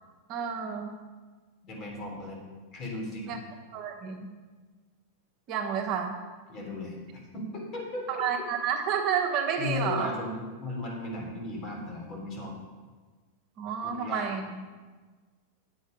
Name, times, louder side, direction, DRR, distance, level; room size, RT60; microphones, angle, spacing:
voice 1, 0.3-1.0 3.2-3.4 3.7-4.3 5.5-6.2 8.1-10.1 13.6-14.6, right 7 dB, 40° right, 2 dB, 1.1 m, -30 dB
voice 2, 1.6-2.4 2.7-3.4 6.5-7.0 7.3-8.4 9.6-12.6 13.8-14.3, left 2 dB, 35° left, 0 dB, 3.2 m, -36 dB
9.8 x 7.6 x 5.2 m, 1.4 s
supercardioid pair, 135°, 0 cm